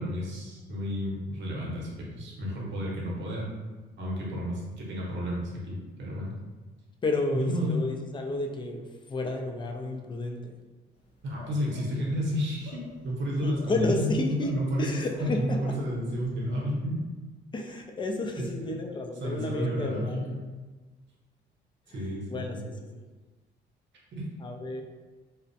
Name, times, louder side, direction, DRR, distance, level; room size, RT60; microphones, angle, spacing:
voice 1, 0.0-3.5 4.0-6.3 7.3-7.8 11.2-17.1 18.4-18.7 19.2-20.4 21.9-22.6 24.1-24.2, equal, 65° right, -4 dB, 0.8 m, -31 dB
voice 2, 7.0-10.6 13.4-14.5 14.8-15.6 17.5-20.2 21.9-22.9 24.4-24.8, left 2 dB, 25° left, 3 dB, 0.3 m, -31 dB
sound 1, 10.9-16.6, left 3 dB, 65° left, 0.8 m, -52 dB
2.4 x 2.0 x 2.6 m, 1.3 s
cardioid pair, 90°, 20 cm